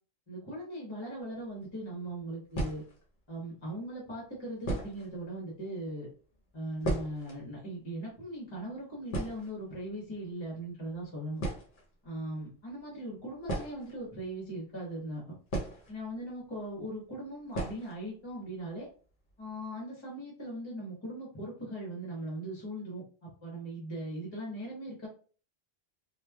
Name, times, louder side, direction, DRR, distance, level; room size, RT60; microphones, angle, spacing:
voice 1, 0.3-2.8 3.3-6.1 6.5-11.4 12.0-15.3 15.9-18.9 19.4-25.1, right 1 dB, 30° left, -4 dB, 1.0 m, -39 dB
sound 1, 1.5-1.6 2.5-3.2 4.0-4.1 4.6-5.2 5.5-5.6 5.8-6.0 6.3-7.4 7.7-7.8 8.1-8.3 8.7-8.8 9.1-10.0 10.9-11.0 11.4-11.9 13.4-14.5 15.5-16.3 16.6-16.7 17.5-18.0 18.3-18.4 18.8-18.9 19.3-19.6, right 1 dB, 55° left, 0.9 m, -36 dB
3.1 x 2.2 x 2.2 m, 0.39 s
omnidirectional pair, 1.1 m